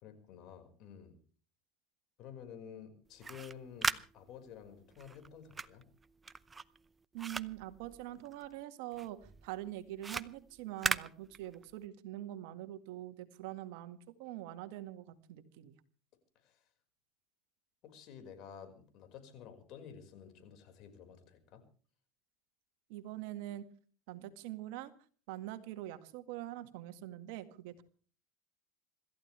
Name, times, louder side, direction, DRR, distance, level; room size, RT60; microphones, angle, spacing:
voice 1, 0.0-1.2 2.2-5.9 16.4-16.7 17.8-21.6, left 8 dB, 55° left, 7 dB, 5.3 m, -51 dB
sound 1, 3.1-8.6 8.9-11.9, right 4 dB, 20° right, 0.7 m, -39 dB
voice 2, 7.1-15.8 22.9-23.6 24.1-24.9 25.3-27.8, right 14 dB, 70° right, 8 dB, 1.9 m, -44 dB
26.5 x 14.5 x 3.4 m, 0.41 s
supercardioid pair, 115°, 0 cm